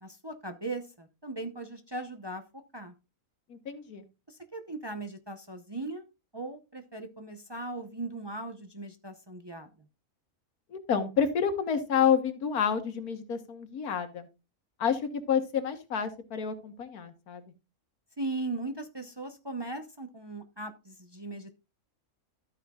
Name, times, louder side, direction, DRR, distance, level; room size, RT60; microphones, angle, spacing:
voice 1, 0.0-2.9 4.3-6.1 6.3-9.7 18.2-21.5, right 2 dB, 20° right, 6 dB, 0.7 m, -38 dB
voice 2, 3.5-4.0 10.7-14.3 14.8-15.0 15.3-17.4, left 7 dB, 90° left, 8 dB, 1.8 m, -29 dB
12.5 x 9.1 x 2.4 m, 0.28 s
omnidirectional pair, 1.5 m